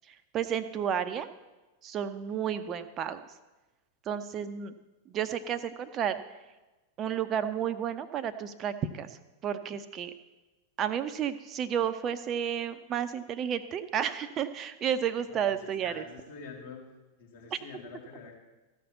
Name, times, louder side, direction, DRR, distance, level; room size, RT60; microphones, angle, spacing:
voice 1, 0.3-1.3 1.8-3.2 4.1-4.7 5.1-6.1 7.0-9.1 9.4-10.1 10.8-16.0, right 8 dB, 30° right, 10 dB, 0.8 m, -31 dB
voice 2, 15.3-16.8 17.2-18.4, left 5 dB, 60° left, -2 dB, 3.8 m, -46 dB
14.5 x 6.0 x 7.9 m, 1.1 s
figure-of-eight pair, 90°, 0 cm